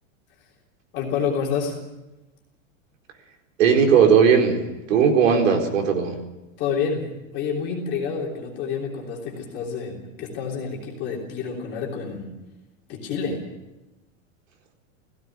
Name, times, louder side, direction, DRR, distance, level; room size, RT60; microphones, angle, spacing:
voice 1, 0.9-1.8 6.6-7.1 7.3-12.3 12.9-13.4, left 6 dB, 30° left, -2 dB, 3.4 m, -28 dB
voice 2, 3.6-6.2, right 6 dB, 75° right, 3 dB, 4.4 m, -18 dB
17.0 x 16.5 x 9.7 m, 1.0 s
supercardioid pair, 180°, 39 cm